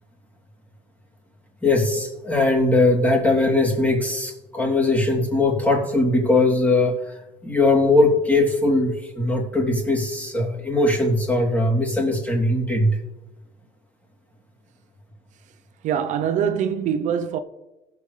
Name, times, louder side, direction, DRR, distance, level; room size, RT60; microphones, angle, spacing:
voice 1, 1.6-7.1 7.4-13.0, left 2 dB, 10° left, 3.2 m, -20 dB
voice 2, 15.8-17.4, right 8 dB, 60° right, 0.7 m, -23 dB
17.5 x 6.9 x 3.3 m
supercardioid pair, 90°, 14 cm